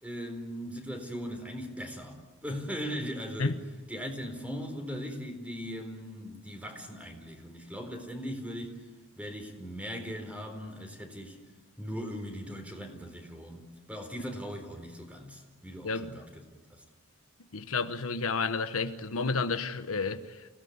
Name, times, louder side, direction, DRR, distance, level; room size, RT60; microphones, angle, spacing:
voice 1, 0.0-3.5 3.9-8.8 9.2-11.4 11.8-16.3, equal, 5° right, 4.3 m, -39 dB
voice 2, 15.8-16.2 17.5-20.5, left 4 dB, 70° left, 1.2 m, -31 dB
29.5 x 18.0 x 9.6 m
head